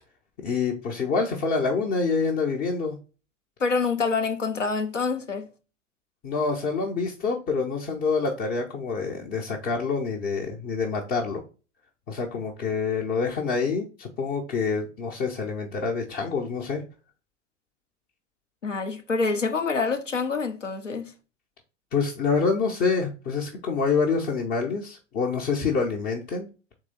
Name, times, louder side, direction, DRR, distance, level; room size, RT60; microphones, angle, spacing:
voice 1, 0.4-3.0 6.2-11.4 12.1-16.8 21.9-26.5, left 4 dB, 25° left, 0.6 m, -26 dB
voice 2, 3.6-5.5 18.6-21.1, left 4 dB, 85° left, 0.7 m, -26 dB
3.8 x 3.0 x 4.0 m
figure-of-eight pair, 90°, 36 cm